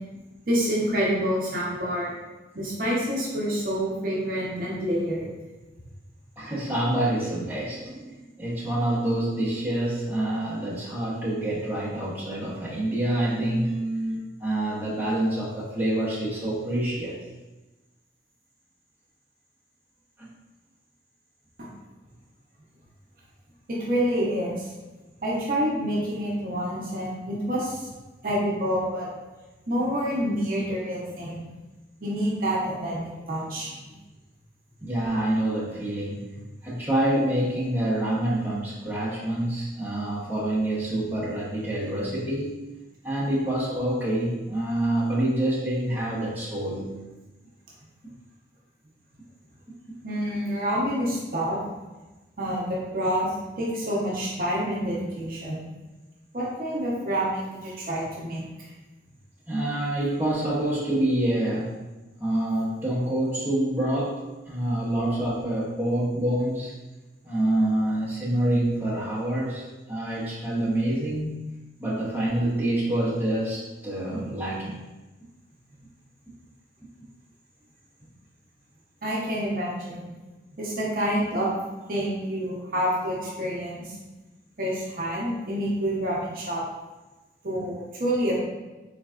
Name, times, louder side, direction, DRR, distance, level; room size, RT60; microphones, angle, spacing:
voice 1, 0.5-2.1 2.5-5.3 23.7-24.7 25.2-27.9 28.2-29.1 29.7-31.4 32.0-33.0 33.3-33.7 34.8-34.9 50.0-51.6 52.4-55.6 56.3-58.7 79.0-80.1 80.6-81.5 81.9-84.0 84.6-86.6 87.4-88.4, equal, 50° right, -5 dB, 0.7 m, -27 dB
voice 2, 6.4-17.2 20.2-20.3 34.8-36.4 36.6-42.6 43.0-47.0 57.7-57.8 59.5-61.8 62.2-66.7 67.2-71.4 71.8-74.8 83.2-83.3, right 1 dB, 10° right, -9 dB, 0.8 m, -27 dB
3.9 x 3.3 x 2.4 m, 1.1 s
head